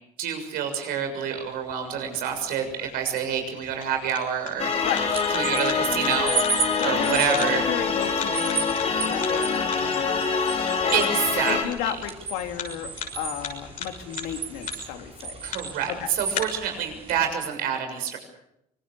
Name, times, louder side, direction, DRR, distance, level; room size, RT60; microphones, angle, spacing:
voice 1, 0.2-4.9 5.3-6.3 6.8-7.6 10.9-11.9 15.4-18.2, right 7 dB, 75° right, 5 dB, 6.8 m, -27 dB
sound 1, 1.4-16.4, left 6 dB, 60° left, 6.5 m, -40 dB
sound 2, 4.6-11.6, left 5 dB, 45° left, 4.0 m, -25 dB
voice 2, 4.8-5.2 6.8-7.2 7.5-11.1 11.5-12.9 13.2-15.4 16.0-16.1, left 10 dB, 90° left, 5 dB, 3.1 m, -33 dB
sound 3, 4.9-17.3, right 6 dB, 40° right, 5.1 m, -35 dB
25.5 x 20.5 x 7.0 m, 0.82 s
supercardioid pair, 90°, 15 cm